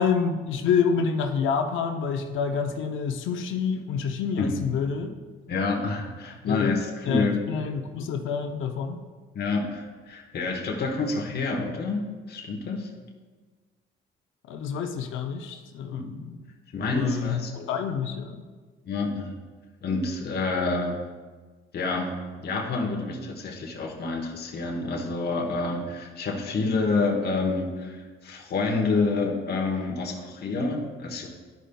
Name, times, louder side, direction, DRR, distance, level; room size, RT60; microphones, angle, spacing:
voice 1, 0.0-5.1 6.5-6.7 7.1-9.0 14.5-16.4 16.8-18.4, left 6 dB, 80° left, 5 dB, 0.6 m, -28 dB
voice 2, 5.5-7.4 9.3-12.9 15.9-16.1 16.7-17.8 18.8-19.4 19.8-21.0 21.7-31.3, left 3 dB, 55° left, 0 dB, 1.0 m, -28 dB
12.0 x 5.1 x 2.2 m, 1.4 s
cardioid pair, 90°, 20 cm